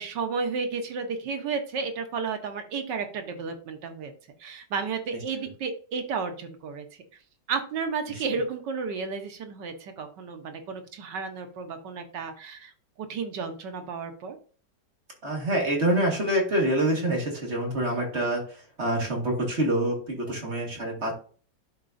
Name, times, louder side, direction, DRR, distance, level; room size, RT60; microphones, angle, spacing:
voice 1, 0.0-4.1 4.4-7.0 7.5-12.7 13.0-14.4, right 5 dB, 80° right, 6 dB, 1.6 m, -32 dB
voice 2, 15.2-18.4 18.8-21.1, right 1 dB, 40° right, 0 dB, 2.0 m, -26 dB
11.5 x 4.1 x 2.6 m, 0.41 s
omnidirectional pair, 1.9 m